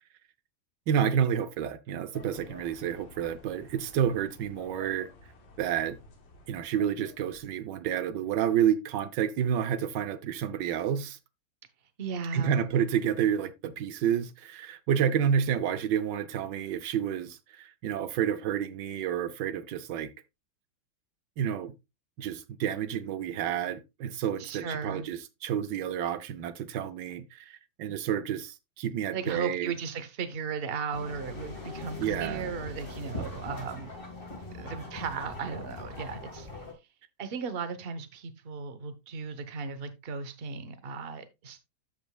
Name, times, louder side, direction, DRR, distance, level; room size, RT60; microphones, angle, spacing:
voice 1, 0.9-5.1 5.6-6.0 6.5-11.2 12.3-20.1 21.4-21.7 22.2-29.7 32.0-32.5, right 9 dB, 70° right, 1.3 m, -29 dB
sound 1, 2.1-7.7, left 2 dB, 75° left, 2.2 m, -52 dB
voice 2, 12.0-12.7 24.4-25.1 29.1-33.9 34.5-36.5 37.2-41.6, right 5 dB, 40° right, 0.9 m, -36 dB
sound 2, 30.9-36.7, left 2 dB, 30° left, 2.0 m, -41 dB
13.5 x 5.1 x 2.3 m
omnidirectional pair, 2.1 m